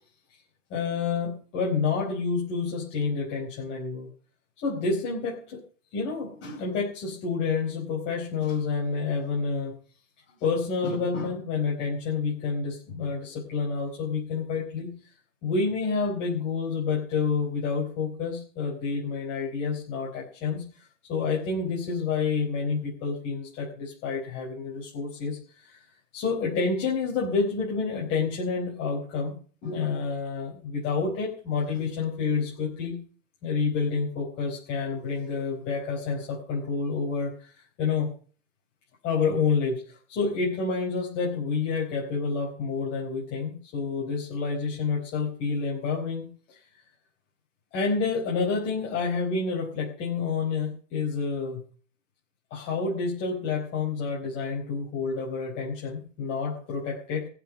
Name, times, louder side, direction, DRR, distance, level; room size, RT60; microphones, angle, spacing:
voice 1, 0.7-4.1 4.6-5.6 5.9-9.7 10.4-14.9 15.4-20.6 21.1-25.8 26.1-29.4 29.6-33.0 33.4-38.1 39.0-46.6 47.7-51.6 52.5-57.3, left 5 dB, 30° left, -3 dB, 4.7 m, -29 dB
15.0 x 6.4 x 9.3 m, 0.42 s
hypercardioid pair, 135°, 38 cm